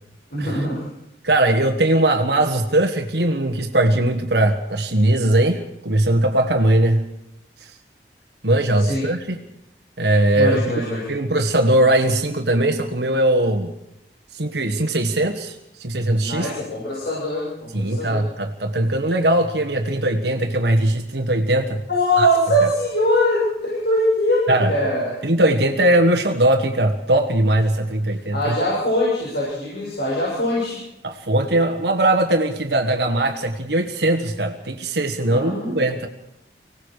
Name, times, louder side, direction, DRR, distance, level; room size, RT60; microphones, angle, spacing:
voice 1, 0.3-0.8 8.8-9.0 10.3-11.1 16.2-18.2 21.9-25.1 28.3-30.8 35.3-35.8, equal, 65° left, -6 dB, 7.5 m, -22 dB
voice 2, 1.2-7.0 7.6-7.7 8.4-9.4 10.0-13.7 14.3-16.5 17.7-21.8 22.2-22.3 24.5-24.7 25.2-28.5 31.0-36.1, right 1 dB, 75° right, 5 dB, 1.5 m, -20 dB
25.0 x 18.0 x 6.6 m, 0.85 s
head